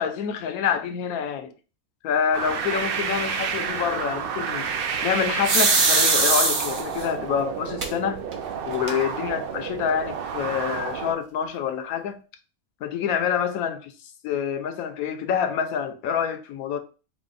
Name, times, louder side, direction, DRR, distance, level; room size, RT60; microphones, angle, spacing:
voice 1, 0.0-1.5 2.0-4.7 5.0-8.2 8.7-12.2 12.8-13.9 14.2-16.8, left 8 dB, 80° left, 1.0 m, -27 dB
sound 1, 2.3-11.1, right 6 dB, 85° right, 0.5 m, -30 dB
sound 2, 5.4-7.0 7.8-7.9 8.3-8.4 8.7-9.3, right 3 dB, 45° right, 0.7 m, -20 dB
4.9 x 2.1 x 3.8 m
omnidirectional pair, 1.5 m